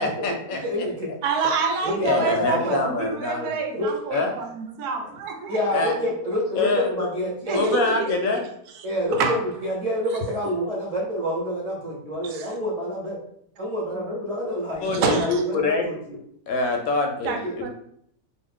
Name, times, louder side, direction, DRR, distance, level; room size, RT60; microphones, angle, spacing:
voice 1, 0.0-0.9 2.0-3.5 4.1-4.3 5.7-5.9 6.5-7.1 7.5-8.4 14.8-15.9 16.5-17.7, left 3 dB, 70° left, 3 dB, 1.0 m, -25 dB
voice 2, 0.6-1.1 1.8-2.9 3.7-3.9 5.5-7.8 8.8-13.2 13.6-16.2 17.4-17.6, equal, 30° right, -5 dB, 0.8 m, -27 dB
voice 3, 1.2-5.6 7.5-8.2 9.1-9.4 12.2-12.5 14.8-15.4 17.2-17.7, right 5 dB, 85° right, 4 dB, 1.1 m, -27 dB
2.6 x 2.4 x 3.5 m, 0.67 s
omnidirectional pair, 1.6 m